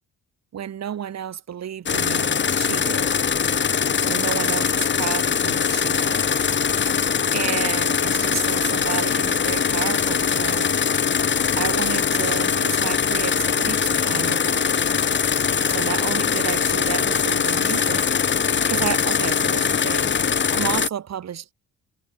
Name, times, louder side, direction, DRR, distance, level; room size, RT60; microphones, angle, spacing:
voice 1, 0.5-3.1 4.1-6.4 7.3-10.8 11.6-14.7 15.7-18.1 18.6-20.1 20.5-21.5, right 9 dB, 60° right, 4.9 m, -31 dB
sound 1, 1.9-20.9, left 7 dB, 40° left, 1.5 m, -22 dB
cardioid pair, 90°, 30 cm